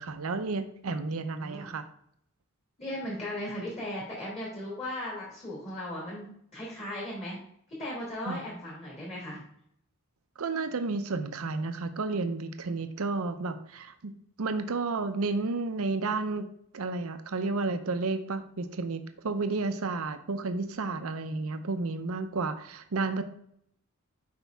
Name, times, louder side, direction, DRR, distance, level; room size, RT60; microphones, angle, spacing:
voice 1, 0.0-1.8 8.3-8.4 10.4-14.1 14.4-16.5 16.7-23.2, right 3 dB, 70° right, 9 dB, 0.6 m, -31 dB
voice 2, 1.3-1.7 2.8-7.4 7.8-9.4, left 1 dB, 25° left, -5 dB, 3.1 m, -37 dB
8.2 x 5.2 x 3.5 m, 0.67 s
head